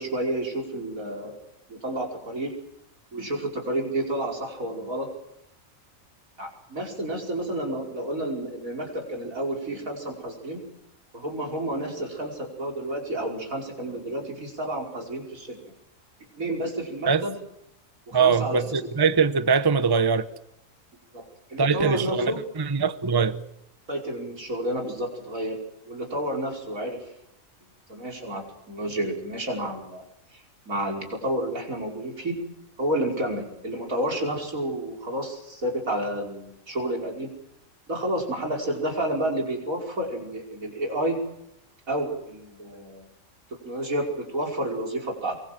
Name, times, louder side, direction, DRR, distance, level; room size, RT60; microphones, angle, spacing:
voice 1, 0.0-1.4 1.7-2.5 3.1-5.1 6.4-10.6 11.1-15.6 16.4-17.3 18.1-18.6 21.1-21.2 21.5-22.4 23.9-25.6 25.9-27.0 27.9-30.0 30.7-32.4 32.8-37.3 37.9-41.2 41.9-43.1 43.6-45.4, right 1 dB, 80° right, 5.6 m, -30 dB
voice 2, 18.1-20.3 21.6-23.4, right 5 dB, 20° right, 0.8 m, -22 dB
24.5 x 23.0 x 7.6 m
omnidirectional pair, 1.4 m